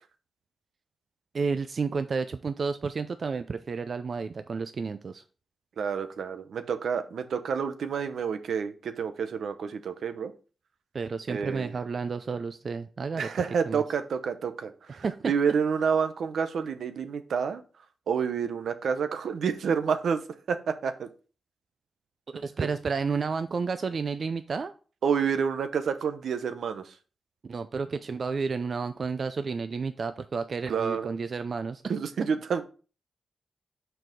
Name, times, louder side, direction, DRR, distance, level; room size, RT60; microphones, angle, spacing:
voice 1, 1.3-5.2 10.9-13.3 13.7-13.8 14.9-15.3 22.3-24.7 27.4-31.9, right 5 dB, 55° right, 10 dB, 0.5 m, -31 dB
voice 2, 5.8-10.3 11.3-11.7 13.2-17.6 18.1-20.2 20.5-21.1 22.6-22.7 25.0-26.9 30.7-31.1 31.9-32.6, right 6 dB, 85° right, 9 dB, 0.8 m, -29 dB
6.0 x 4.7 x 5.0 m, 0.37 s
cardioid pair, 75°, 0 cm